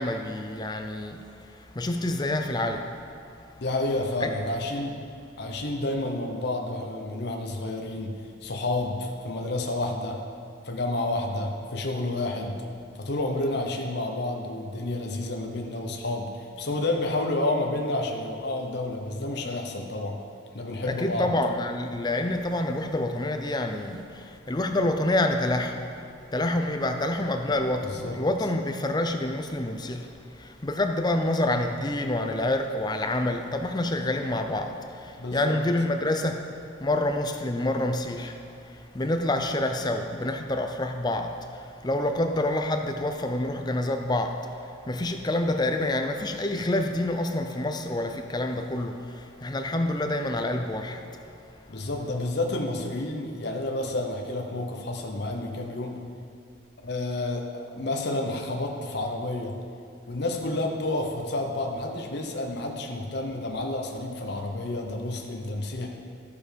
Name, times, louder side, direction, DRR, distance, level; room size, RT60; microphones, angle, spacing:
voice 1, 0.0-3.0 4.2-4.3 20.9-25.8 26.3-36.5 36.8-51.1, left 1 dB, 20° left, 5 dB, 0.5 m, -28 dB
voice 2, 3.6-5.0 5.4-10.2 10.6-12.5 13.0-20.2 20.5-21.3 27.8-28.2 35.2-35.6 51.7-56.0 56.8-59.6 60.1-65.9, left 2 dB, 55° left, 1 dB, 0.9 m, -30 dB
12.5 x 6.8 x 5.2 m, 2.4 s
head